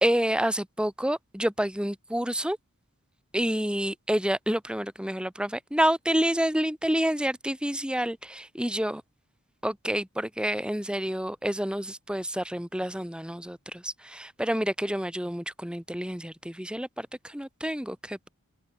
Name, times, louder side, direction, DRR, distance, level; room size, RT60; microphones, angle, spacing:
voice 1, 0.0-2.6 3.3-9.0 9.6-18.3, equal, 5° right, 2.1 m, -28 dB
open air
head